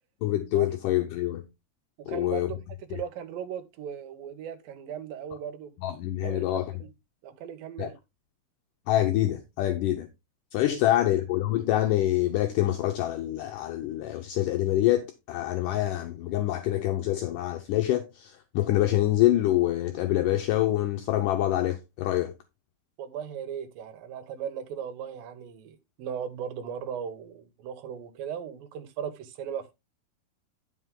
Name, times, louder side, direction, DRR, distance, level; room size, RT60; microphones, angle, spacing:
voice 1, 0.2-1.4 2.1-2.5 5.8-6.7 7.8-7.9 8.9-10.1 10.5-22.3, left 14 dB, 75° left, 2.1 m, -26 dB
voice 2, 2.0-2.6 2.9-5.7 6.2-6.9 7.2-7.9 10.7-11.0 23.0-29.7, right 8 dB, 75° right, 2.8 m, -37 dB
11.0 x 5.3 x 3.7 m
omnidirectional pair, 4.2 m